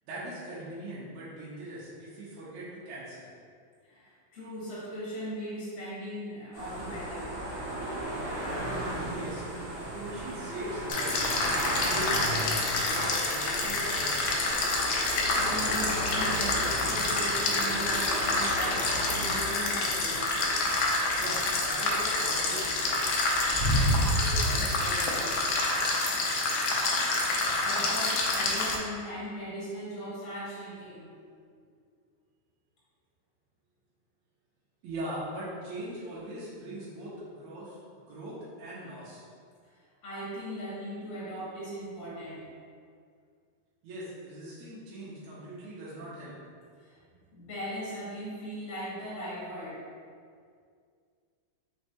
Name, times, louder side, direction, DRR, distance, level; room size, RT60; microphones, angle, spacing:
voice 1, 0.1-3.3 9.1-9.4 9.7-11.3 11.6-12.6 12.9-14.5 21.2-23.0 23.7-25.8 34.8-37.8 38.1-39.2 43.8-46.3, right 1 dB, 75° right, -9 dB, 2.2 m, -41 dB
voice 2, 3.8-7.4 15.3-20.3 27.1-31.1 31.6-31.7 39.6-42.5 46.8-47.0 47.3-49.9, equal, 40° left, -9 dB, 1.3 m, -39 dB
sound 1, 6.5-24.7, right 1 dB, 45° right, 1.1 m, -37 dB
sound 2, 10.9-28.8, left 2 dB, 80° left, 1.7 m, -27 dB
5.2 x 3.3 x 2.8 m, 2.2 s
omnidirectional pair, 3.4 m